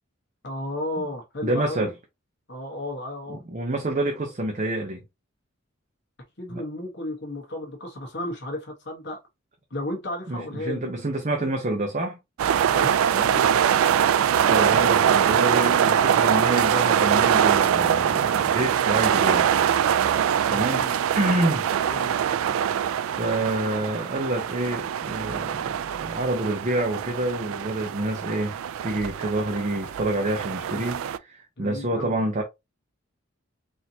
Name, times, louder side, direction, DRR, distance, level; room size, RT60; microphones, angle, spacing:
voice 1, 0.4-1.9 2.5-3.4 6.4-9.2 9.7-10.9 12.7-13.5 20.5-20.9 21.8-22.2 30.7-30.8 31.6-32.1, left 1 dB, 55° left, 1.1 m, -33 dB
voice 2, 1.4-1.9 3.3-5.0 6.5-6.6 10.3-12.2 14.4-19.5 20.5-20.8 21.1-21.7 22.5-28.5 28.8-32.4, right 1 dB, 35° right, 0.7 m, -27 dB
sound 1, 12.4-31.2, right 9 dB, 80° right, 0.3 m, -23 dB
4.3 x 2.7 x 2.7 m
head